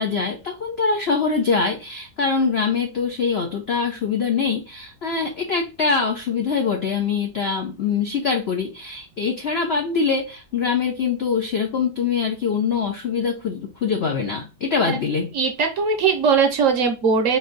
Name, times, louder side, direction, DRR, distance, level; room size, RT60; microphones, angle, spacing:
voice 1, 0.0-15.3, left 5 dB, 90° left, 4 dB, 0.5 m, -23 dB
voice 2, 15.3-17.4, right 5 dB, 60° right, 4 dB, 0.9 m, -20 dB
4.0 x 2.6 x 3.8 m, 0.30 s
omnidirectional pair, 1.9 m